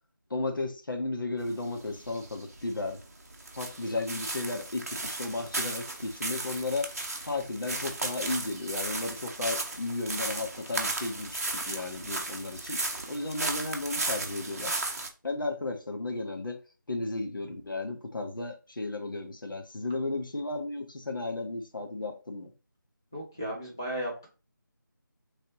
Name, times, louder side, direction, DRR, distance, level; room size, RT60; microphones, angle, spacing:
voice 1, 0.3-3.0 3.6-6.9 7.3-12.8 13.1-14.7 15.2-16.6 16.9-22.5, left 2 dB, 80° left, 0.9 m, -34 dB
sound 1, 1.4-15.1, right 2 dB, 45° right, 0.6 m, -35 dB
voice 2, 23.1-24.3, equal, 10° left, 0.4 m, -35 dB
3.2 x 2.9 x 2.9 m
figure-of-eight pair, 170°, 11 cm